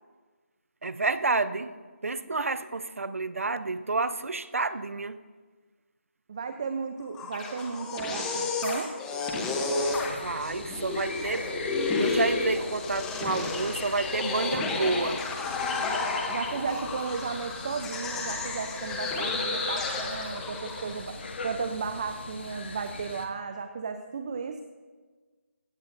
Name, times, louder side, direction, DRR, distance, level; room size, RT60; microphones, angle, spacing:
voice 1, 0.8-1.7 2.0-5.2 10.1-11.5 12.0-15.2, right 3 dB, 75° right, 13 dB, 0.7 m, -29 dB
voice 2, 6.3-8.9 16.3-24.6, right 5 dB, 30° right, 8 dB, 0.5 m, -34 dB
sound 1, 7.0-21.2, left 3 dB, 5° left, 0.8 m, -31 dB
sound 2, 9.8-23.3, left 3 dB, 50° left, 1.5 m, -41 dB
15.5 x 15.5 x 2.6 m, 1.4 s
figure-of-eight pair, 165°, 7 cm